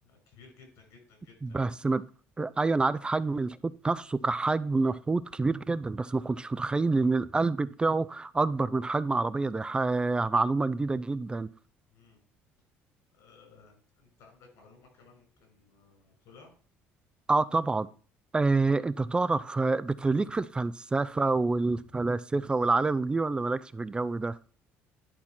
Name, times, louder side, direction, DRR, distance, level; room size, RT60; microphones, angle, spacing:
voice 1, 0.0-1.7 11.9-12.2 13.1-16.5, left 4 dB, 75° left, 5.8 m, -57 dB
voice 2, 1.4-2.0 2.4-11.5 17.3-17.9 18.3-24.4, right 3 dB, 20° right, 0.4 m, -27 dB
11.0 x 4.3 x 5.9 m
supercardioid pair, 95°, 5 cm